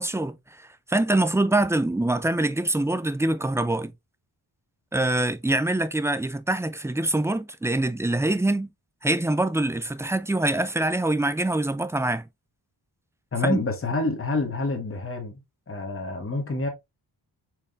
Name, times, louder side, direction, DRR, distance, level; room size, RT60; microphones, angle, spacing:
voice 1, 0.0-3.9 4.9-8.7 9.0-12.2 13.4-13.6, right 2 dB, 5° right, 0.3 m, -24 dB
voice 2, 13.3-15.3 15.7-16.7, left 2 dB, 30° left, 1.2 m, -27 dB
4.5 x 3.5 x 2.4 m
cardioid pair, 75°, 41 cm